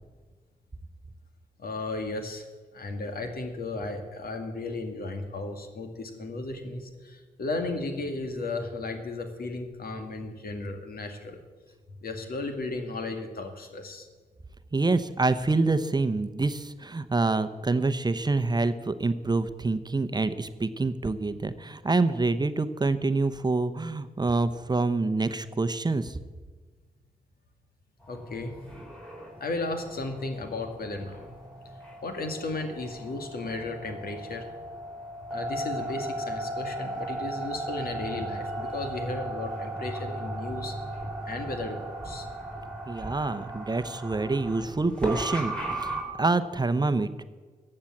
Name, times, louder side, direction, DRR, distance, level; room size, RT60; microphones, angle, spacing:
voice 1, 1.6-2.5 2.7-11.4 12.0-14.1 28.1-28.5 29.4-31.3 32.0-34.5 35.3-40.7 41.3-42.3, left 2 dB, 70° left, 6 dB, 2.0 m, -34 dB
voice 2, 14.7-26.2 42.9-47.2, right 3 dB, 25° right, 11 dB, 0.9 m, -26 dB
sound 1, 28.0-46.0, right 1 dB, 5° left, 4.5 m, -36 dB
14.5 x 8.8 x 7.3 m, 1.4 s
cardioid pair, 65°, 16 cm